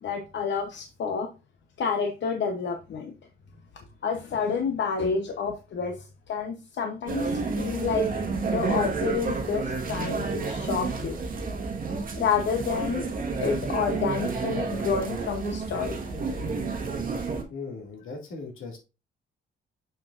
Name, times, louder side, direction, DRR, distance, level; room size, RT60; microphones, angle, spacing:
voice 1, 0.0-1.3 1.8-3.1 4.0-8.1 8.5-11.2 12.2-13.0 13.4-16.0, left 6 dB, 60° left, 4 dB, 0.9 m, -29 dB
sound 1, 7.1-17.4, right 4 dB, 45° right, 1.4 m, -30 dB
voice 2, 17.2-18.8, left 4 dB, 80° left, 1 dB, 2.3 m, -39 dB
7.0 x 6.1 x 2.5 m, 0.30 s
cardioid pair, 120°, 21 cm